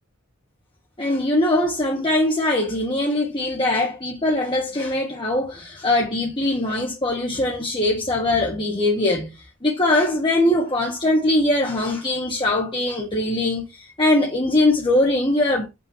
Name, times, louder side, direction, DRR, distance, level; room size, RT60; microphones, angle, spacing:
voice 1, 1.0-15.7, left 1 dB, 25° left, 1.5 m, -21 dB
7.3 x 5.7 x 2.9 m
head